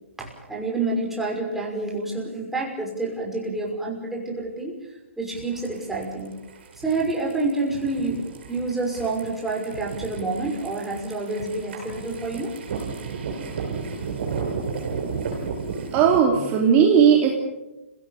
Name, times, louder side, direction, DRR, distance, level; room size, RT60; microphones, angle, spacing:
voice 1, 0.2-4.7 5.2-6.3 6.8-8.2 8.5-12.5, right 3 dB, 5° right, -3 dB, 5.8 m, -28 dB
sound 1, 5.3-16.2, right 5 dB, 55° right, 7.7 m, -33 dB
voice 2, 15.9-17.4, right 7 dB, 30° right, 1 dB, 3.0 m, -17 dB
29.5 x 17.0 x 6.8 m, 1.0 s
figure-of-eight pair, 130°, 7 cm